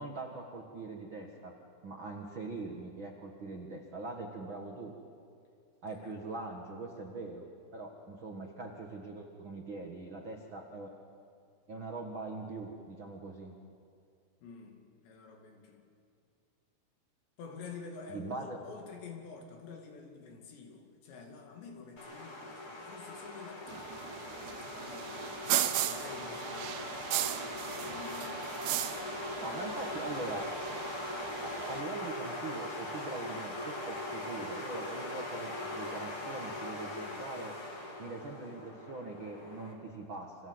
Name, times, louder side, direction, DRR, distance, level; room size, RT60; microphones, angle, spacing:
voice 1, 0.0-1.5 1.8-4.9 5.8-7.4 7.7-10.9 11.7-13.5 18.1-18.6 29.4-30.5 31.4-37.5 38.0-40.5, right 3 dB, 60° right, 2 dB, 1.3 m, -42 dB
voice 2, 14.4-15.9 17.4-25.5 25.8-30.1, left 5 dB, 70° left, 3 dB, 4.6 m, -49 dB
sound 1, 22.0-39.7, left 1 dB, 30° left, 3.7 m, -40 dB
sound 2, 23.7-31.8, right 12 dB, 75° right, 2.9 m, -37 dB
29.5 x 25.5 x 7.9 m, 2.3 s
omnidirectional pair, 5.3 m